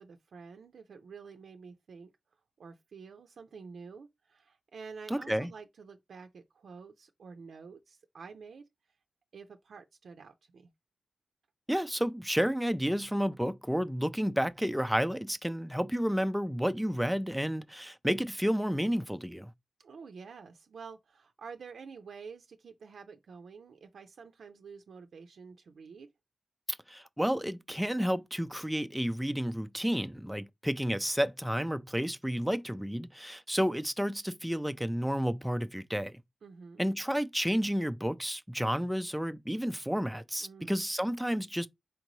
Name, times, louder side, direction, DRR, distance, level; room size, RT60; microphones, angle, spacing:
voice 1, 0.0-2.1 2.6-8.6 9.3-10.7 19.8-26.1 36.4-36.8 40.4-40.7, right 5 dB, 85° right, 0.5 m, -49 dB
voice 2, 5.1-5.5 11.7-19.5 26.9-36.2 36.8-41.7, equal, ahead, 0.3 m, -31 dB
4.4 x 3.9 x 3.0 m
wide cardioid pair, 155°, 0 cm